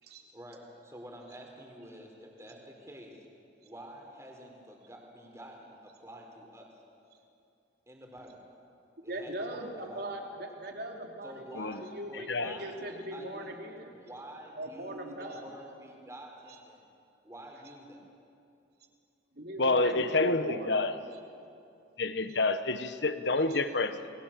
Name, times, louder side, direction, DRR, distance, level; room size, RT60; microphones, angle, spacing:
voice 1, 0.3-3.3 3.6-6.7 7.9-8.4 9.0-10.1 11.2-12.8 13.1-13.6 13.9-16.8 17.2-18.1, right 1 dB, 15° right, 0 dB, 4.5 m, -48 dB
voice 2, 9.0-11.4 11.8-13.9 14.6-15.4 19.3-20.7 22.3-22.4 23.5-23.6, right 1 dB, 60° right, 2 dB, 3.3 m, -40 dB
voice 3, 19.6-20.9 22.0-24.1, left 2 dB, 65° left, 11 dB, 1.3 m, -28 dB
30.0 x 21.5 x 7.6 m, 2.6 s
head